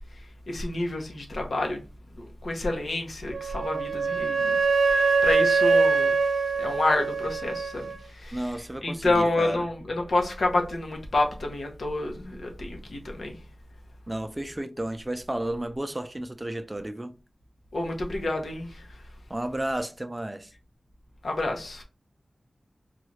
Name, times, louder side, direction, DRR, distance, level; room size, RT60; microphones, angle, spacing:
voice 1, 0.5-1.8 2.2-4.6 4.9-6.1 6.6-8.6 8.8-13.4 17.7-19.0 21.2-21.8, left 2 dB, 85° left, 0.8 m, -29 dB
Wind instrument woodwind instrument, 3.3-8.0, right 4 dB, 85° right, 0.3 m, -23 dB
voice 2, 8.3-9.7 14.1-17.1 19.3-20.5, right 1 dB, 20° right, 0.5 m, -32 dB
3.9 x 2.4 x 3.1 m
wide cardioid pair, 55°, 0 cm